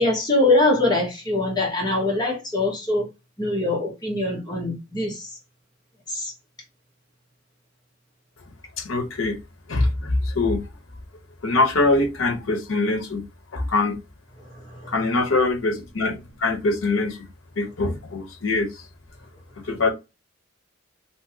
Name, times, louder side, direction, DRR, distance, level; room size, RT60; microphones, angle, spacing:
voice 1, 0.0-3.1 3.4-5.3 6.1-6.3 14.7-14.9, left 2 dB, 20° left, 1.1 m, -23 dB
voice 2, 8.8-9.4 9.7-10.6 11.4-13.2 13.5-14.0 14.9-17.3 17.6-18.7 19.7-19.9, left 2 dB, 80° left, 0.7 m, -23 dB
2.8 x 2.7 x 2.6 m
head